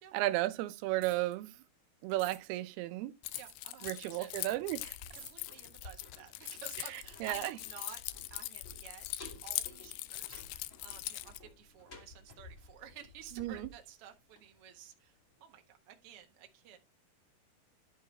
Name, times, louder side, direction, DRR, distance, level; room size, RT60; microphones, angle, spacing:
voice 1, 0.1-1.6 2.0-3.1 3.8-4.9 7.2-7.6 13.4-13.7, right 17 dB, 90° right, 2.6 m, -34 dB
sound 1, 1.0-1.3 2.2-2.4 3.3-3.5 4.3-4.6 5.1-5.3 6.4-6.6, right 4 dB, 25° right, 1.5 m, -50 dB
Keys jangling, 3.2-11.4, left 17 dB, 85° left, 2.6 m, -42 dB
voice 2, 3.4-4.3 5.1-8.0 8.3-16.8, right 9 dB, 55° right, 1.7 m, -53 dB
sound 2, 4.3-15.1 15.4-15.5, left 3 dB, 25° left, 2.2 m, -55 dB
11.0 x 4.8 x 4.2 m
omnidirectional pair, 4.4 m